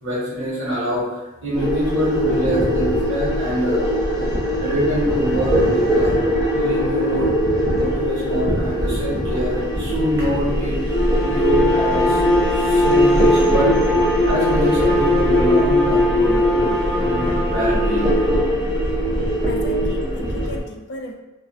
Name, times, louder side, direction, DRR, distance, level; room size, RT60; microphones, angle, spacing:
voice 1, 0.0-3.8 4.2-4.3 4.6-6.1 6.5-7.3 7.7-10.8 11.2-12.2 12.6-13.7 14.2-18.1, equal, 70° right, -7 dB, 1.2 m, -24 dB
sound 1, 1.5-20.6, equal, 20° right, 0.6 m, -21 dB
Bowed string instrument, 10.8-18.4, left 2 dB, 35° left, 0.7 m, -20 dB
voice 2, 19.5-21.1, left 1 dB, 55° left, 2 dB, 0.4 m, -35 dB
2.5 x 2.3 x 3.1 m, 1.0 s
head